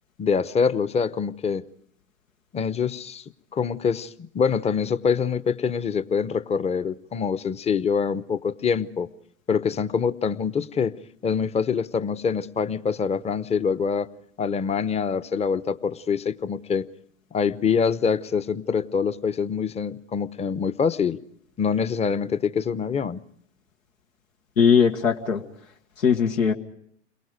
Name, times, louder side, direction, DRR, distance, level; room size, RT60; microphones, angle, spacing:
voice 1, 0.2-1.6 2.5-3.2 3.5-9.1 9.5-10.9 11.2-14.1 14.4-16.9 17.3-21.2 21.6-23.2, left 6 dB, 15° left, 15 dB, 0.8 m, -25 dB
voice 2, 24.6-25.4 26.0-26.5, left 7 dB, 85° left, 3 dB, 1.9 m, -19 dB
29.5 x 22.5 x 5.0 m, 0.69 s
hypercardioid pair, 95°, 39 cm